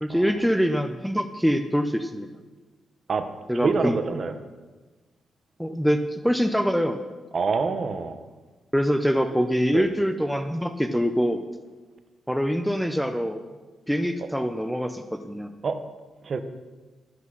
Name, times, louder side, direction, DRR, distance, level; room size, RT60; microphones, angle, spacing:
voice 1, 0.0-2.3 3.5-4.0 5.6-7.1 8.7-11.4 12.3-13.4 13.9-15.5, equal, ahead, 8 dB, 0.6 m, -24 dB
voice 2, 3.6-4.4 7.3-8.2 9.7-9.9 15.6-15.8 16.2-16.4, right 4 dB, 40° right, 9 dB, 0.9 m, -26 dB
11.0 x 10.5 x 6.4 m, 1.3 s
wide cardioid pair, 150°, 0 cm